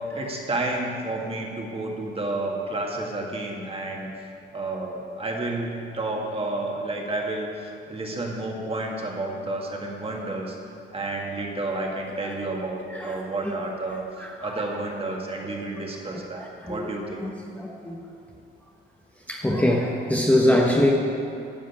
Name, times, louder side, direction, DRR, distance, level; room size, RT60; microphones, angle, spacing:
voice 1, 0.1-4.1 4.5-10.6 10.9-14.0 14.4-17.2, right 2 dB, 30° right, 0 dB, 2.0 m, -30 dB
voice 2, 14.2-14.6 16.1-16.9 17.2-18.0 19.3-20.9, left 1 dB, 10° left, -2 dB, 1.1 m, -24 dB
12.5 x 5.1 x 8.6 m, 2.7 s
cardioid pair, 90°, 20 cm